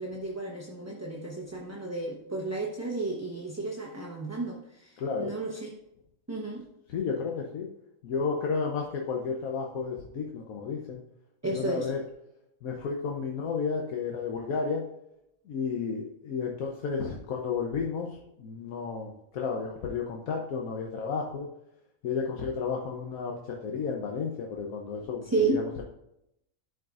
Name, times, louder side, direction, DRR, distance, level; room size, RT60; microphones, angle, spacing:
voice 1, 0.0-5.7 6.3-6.6 11.4-11.9 25.3-25.6, right 3 dB, 15° right, -2 dB, 0.7 m, -32 dB
voice 2, 5.0-5.4 6.9-7.7 8.0-11.0 11.5-12.0 12.6-14.8 15.5-21.5 22.0-25.6, left 5 dB, 85° left, 0 dB, 1.3 m, -32 dB
11.5 x 5.1 x 2.5 m, 0.82 s
omnidirectional pair, 1.4 m